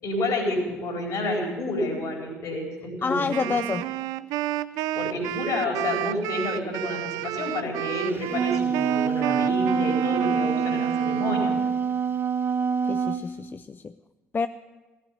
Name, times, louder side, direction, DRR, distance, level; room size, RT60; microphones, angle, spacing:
voice 1, 0.0-3.6 4.9-11.5, left 1 dB, 60° left, 0 dB, 4.5 m, -29 dB
voice 2, 3.0-3.9 12.8-14.0 14.3-14.5, left 5 dB, 30° left, 12 dB, 0.5 m, -28 dB
Wind instrument woodwind instrument, 3.3-11.7, right 15 dB, 65° right, 0.4 m, -31 dB
Wind instrument woodwind instrument 2, 8.1-13.3, right 6 dB, 35° right, 0.9 m, -25 dB
16.0 x 9.0 x 8.7 m, 1.2 s
figure-of-eight pair, 45°, 7 cm